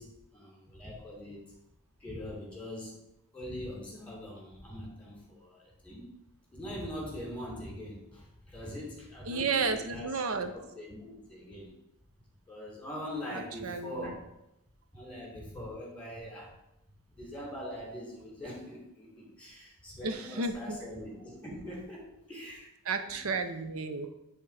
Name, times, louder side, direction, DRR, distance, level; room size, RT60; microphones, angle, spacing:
voice 1, 0.0-1.5 2.0-3.0 3.3-6.1 6.5-10.2 10.5-11.7 12.5-14.3 14.9-16.5 17.1-22.0 22.3-23.1, left 1 dB, 5° left, -3 dB, 2.5 m, -42 dB
voice 2, 9.3-10.5 13.3-14.1 20.0-20.8 22.9-24.1, right 4 dB, 75° right, 8 dB, 0.7 m, -32 dB
9.7 x 3.6 x 4.9 m, 0.84 s
head